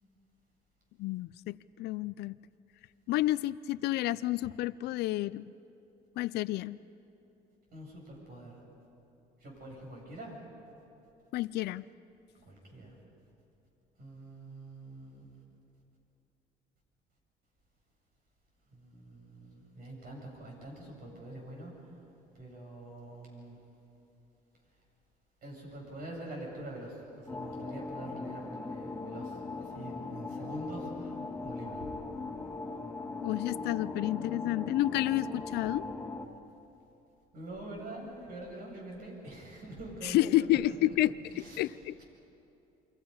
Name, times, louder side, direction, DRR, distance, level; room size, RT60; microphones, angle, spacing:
voice 1, 1.0-2.4 3.1-5.4 6.2-6.8 11.3-11.8 33.2-35.9 40.0-41.1 41.6-42.0, left 15 dB, 75° left, 16 dB, 0.4 m, -30 dB
voice 2, 7.7-8.6 9.4-10.4 12.4-13.0 14.0-15.3 18.7-21.7 22.3-23.6 25.4-31.2 31.4-31.9 37.3-40.9 41.3-41.6 42.0-42.1, right 1 dB, 60° right, -1 dB, 7.9 m, -45 dB
sound 1, 27.3-36.3, left 3 dB, 10° left, 2.2 m, -39 dB
29.0 x 23.5 x 5.6 m, 2.9 s
cardioid pair, 110°, 17 cm